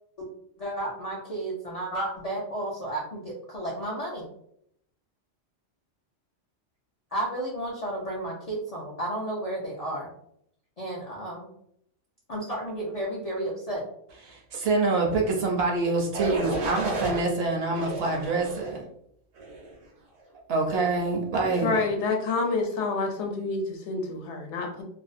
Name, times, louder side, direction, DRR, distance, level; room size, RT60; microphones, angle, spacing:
voice 1, 0.6-4.2 7.1-10.1 10.8-11.5 12.3-13.8, right 1 dB, 55° left, -5 dB, 0.4 m, -32 dB
voice 2, 14.2-18.8 20.5-21.8, right 3 dB, 65° right, 0 dB, 0.7 m, -26 dB
sound 1, 16.1-17.2 17.7-18.8 19.4-19.7, right 2 dB, 85° right, 1.0 m, -31 dB
voice 3, 21.6-24.8, left 3 dB, 75° left, 2 dB, 0.8 m, -28 dB
2.5 x 2.0 x 2.4 m, 0.73 s
omnidirectional pair, 1.2 m